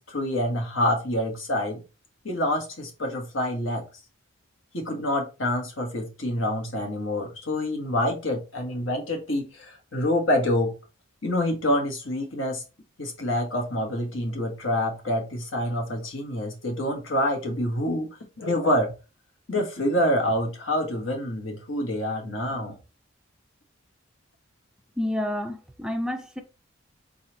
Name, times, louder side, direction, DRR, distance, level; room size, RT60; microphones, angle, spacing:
voice 1, 0.0-1.8 2.2-3.8 4.7-10.7 11.2-12.6 13.0-18.1 18.4-18.9 19.5-22.8, left 1 dB, 70° left, 1.5 m, -27 dB
voice 2, 25.0-26.4, left 1 dB, 5° right, 0.4 m, -29 dB
4.1 x 4.0 x 2.9 m
head